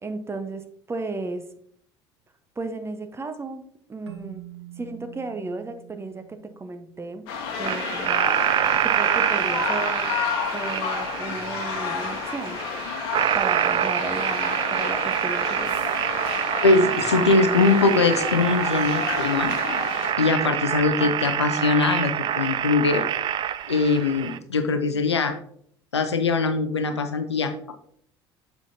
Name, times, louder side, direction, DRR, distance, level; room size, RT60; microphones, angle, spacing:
voice 1, 0.0-1.5 2.6-4.4 4.8-7.3 7.6-8.3 8.8-10.2 10.5-12.6 13.3-15.7, right 3 dB, 20° right, 8 dB, 0.8 m, -34 dB
Keyboard (musical), 4.1-7.3, right 12 dB, 85° right, 0.7 m, -45 dB
sound 1, 7.3-20.1, left 6 dB, 65° left, 1.1 m, -31 dB
sound 2, 7.6-24.4, right 10 dB, 35° right, 0.4 m, -26 dB
voice 2, 16.6-19.5 20.2-23.0 23.7-25.3 25.9-27.7, left 3 dB, 85° left, 8 dB, 0.6 m, -22 dB
7.2 x 5.8 x 2.7 m, 0.64 s
figure-of-eight pair, 60°, 14 cm